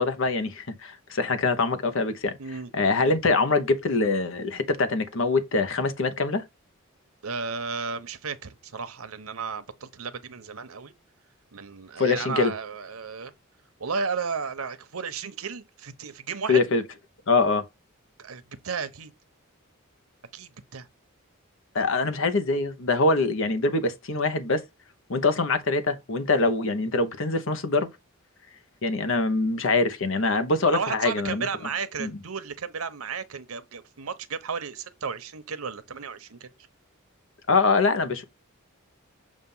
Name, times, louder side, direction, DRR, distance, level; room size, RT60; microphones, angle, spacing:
voice 1, 0.0-2.3 2.7-6.4 12.0-12.5 16.5-16.8 17.3-17.6 21.7-24.6 25.1-27.9 28.8-31.5 32.0-32.1 37.5-38.2, left 3 dB, 65° left, 0.9 m, -24 dB
voice 2, 2.4-2.7 7.2-10.9 11.5-13.3 13.8-16.6 18.2-19.1 20.3-20.9 30.7-36.5, right 5 dB, 90° right, 0.9 m, -33 dB
7.3 x 2.6 x 5.4 m
head